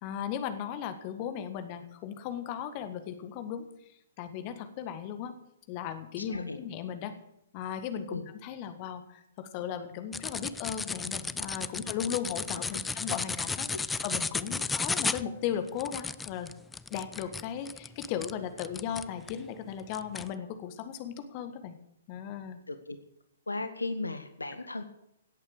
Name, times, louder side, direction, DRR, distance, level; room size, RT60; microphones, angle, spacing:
voice 1, 0.0-3.7 4.2-5.3 5.7-7.1 7.5-13.7 14.0-16.5 16.9-21.8 22.1-22.6, left 9 dB, 35° left, 9 dB, 1.7 m, -36 dB
voice 2, 6.3-6.6 8.1-8.2 11.8-11.9 13.7-13.8 22.7-23.0 23.5-24.8, left 2 dB, 80° left, 10 dB, 1.3 m, -36 dB
sound 1, 10.1-19.4 19.9-20.3, left 4 dB, 10° left, 0.4 m, -34 dB
17.5 x 8.6 x 6.6 m, 0.78 s
figure-of-eight pair, 120°, 0 cm